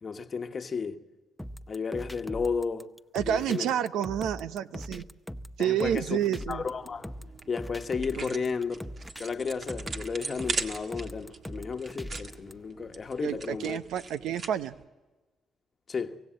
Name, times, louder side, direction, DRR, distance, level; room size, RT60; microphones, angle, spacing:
voice 1, 0.0-1.0 1.7-2.9 3.2-3.7 5.6-6.2 6.5-7.1 7.5-8.8 9.2-13.8 15.9-16.2, left 5 dB, 40° left, 1.2 m, -33 dB
sound 1, 1.4-12.5, equal, 5° left, 0.7 m, -41 dB
voice 2, 3.1-5.1 5.6-6.6 8.2-8.4 13.2-14.7, right 10 dB, 85° right, 0.7 m, -29 dB
sound 2, 6.6-14.8, right 4 dB, 45° right, 1.7 m, -40 dB
25.0 x 17.0 x 7.5 m
cardioid pair, 90°, 0 cm